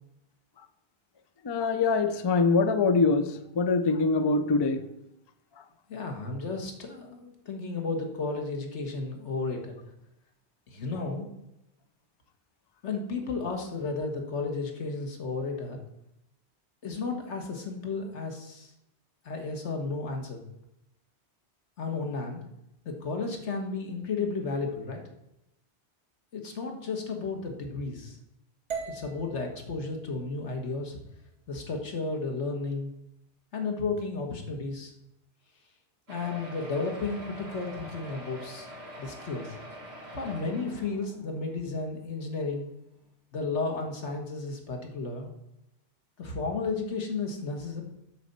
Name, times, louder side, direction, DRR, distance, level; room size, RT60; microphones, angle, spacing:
voice 1, 1.4-4.9, left 4 dB, 35° left, 0.4 m, -24 dB
voice 2, 5.9-9.7 10.7-11.3 12.8-15.8 16.8-18.7 19.2-20.4 21.8-22.4 22.8-25.0 26.3-28.2 28.9-31.0 31.5-32.9 33.5-34.9 36.1-38.7 39.0-39.5 40.1-42.7 43.3-45.3 46.2-47.8, left 3 dB, 90° left, 1.6 m, -33 dB
sound 1, 28.7-32.8, right 5 dB, 85° right, 1.7 m, -43 dB
sound 2, 36.1-41.5 42.2-42.3 42.5-42.6 43.0-43.1, equal, 65° right, 2.3 m, -44 dB
8.1 x 4.2 x 6.7 m
omnidirectional pair, 1.1 m